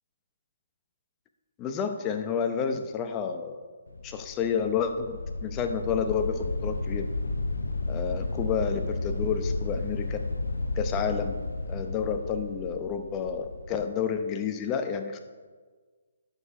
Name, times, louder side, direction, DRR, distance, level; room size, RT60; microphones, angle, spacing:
voice 1, 1.6-3.6 4.0-7.0 7.9-10.2 10.7-11.3 11.7-15.2, left 7 dB, 20° left, 6 dB, 0.7 m, -30 dB
sound 1, 3.9-13.9, left 2 dB, 85° left, 0.7 m, -32 dB
9.7 x 6.6 x 5.0 m, 1.5 s
hypercardioid pair, 145°, 0 cm